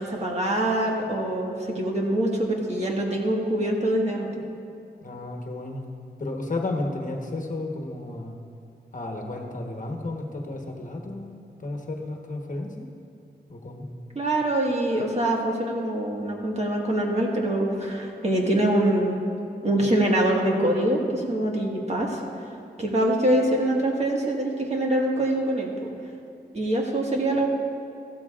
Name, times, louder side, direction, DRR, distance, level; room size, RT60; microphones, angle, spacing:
voice 1, 0.0-4.4 14.2-19.2 19.6-22.2 22.8-25.9 26.5-27.5, right 1 dB, 40° right, -1 dB, 1.7 m, -24 dB
voice 2, 5.0-5.8 6.2-8.4 8.9-12.9 13.5-13.9, left 2 dB, 50° left, 1 dB, 1.2 m, -33 dB
15.0 x 12.5 x 2.5 m, 2.4 s
wide cardioid pair, 100°, 18 cm